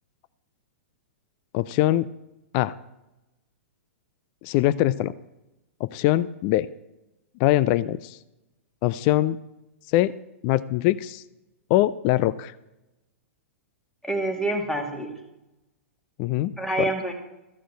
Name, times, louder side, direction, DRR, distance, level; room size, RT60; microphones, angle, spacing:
voice 1, 1.5-2.1 2.5-2.7 4.4-5.1 5.8-6.7 7.4-8.2 8.8-9.4 9.9-10.1 10.4-11.2 11.7-12.5 16.2-16.9, left 15 dB, 40° left, 17 dB, 0.4 m, -22 dB
voice 2, 14.0-15.2 16.6-17.1, right 2 dB, 5° left, 4 dB, 2.1 m, -27 dB
14.0 x 6.3 x 8.2 m, 0.95 s
hypercardioid pair, 115°, 8 cm